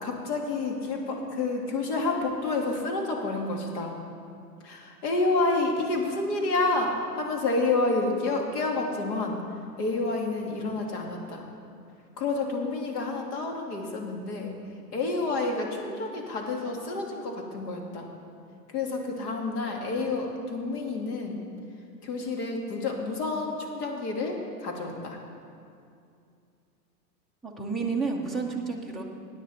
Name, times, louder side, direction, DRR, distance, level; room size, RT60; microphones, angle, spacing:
voice 1, 0.0-3.9 4.6-9.4 9.8-11.5 12.2-14.5 14.9-18.1 18.7-21.4 22.0-25.2, left 3 dB, 65° left, 1 dB, 2.4 m, -29 dB
voice 2, 27.4-29.0, right 4 dB, ahead, 0 dB, 0.3 m, -30 dB
16.5 x 9.3 x 4.2 m, 2.4 s
hypercardioid pair, 115°, 50 cm